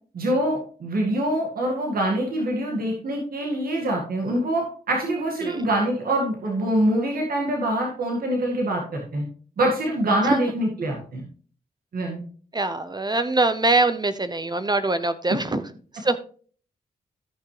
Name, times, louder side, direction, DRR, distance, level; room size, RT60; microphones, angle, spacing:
voice 1, 0.1-9.2 9.6-11.3 11.9-12.2, right 1 dB, 75° right, 0 dB, 1.9 m, -24 dB
voice 2, 12.5-15.6 16.0-16.2, right 2 dB, 30° right, 11 dB, 0.7 m, -23 dB
13.5 x 5.9 x 3.3 m, 0.43 s
cardioid pair, 50°, 15 cm